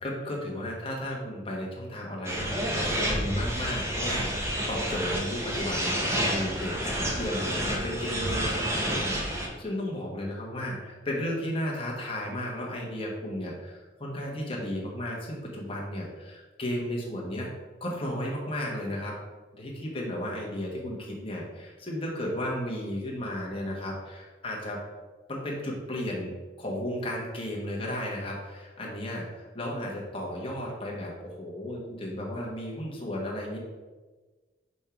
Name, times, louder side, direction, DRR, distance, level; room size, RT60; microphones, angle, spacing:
voice 1, 0.0-17.5 17.8-19.2 19.5-24.8 25.3-33.6, left 1 dB, 30° left, -3 dB, 1.2 m, -34 dB
sound 1, 2.2-9.5, equal, 15° right, 0.9 m, -29 dB
5.3 x 3.6 x 5.8 m, 1.3 s
head